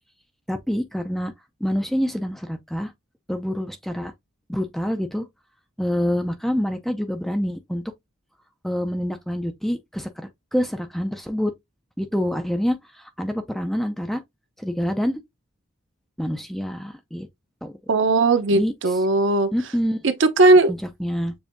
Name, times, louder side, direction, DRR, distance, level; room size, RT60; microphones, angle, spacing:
voice 1, 0.5-1.3 1.6-2.9 3.3-4.1 4.5-5.3 5.8-7.8 8.6-11.5 12.0-14.2 14.6-15.2 16.2-17.3 17.6-17.7 18.5-18.7 19.5-20.0 20.7-21.3, equal, ahead, 0.4 m, -26 dB
voice 2, 17.9-19.5 20.0-20.7, right 2 dB, 60° right, 0.8 m, -17 dB
7.0 x 2.6 x 2.5 m
head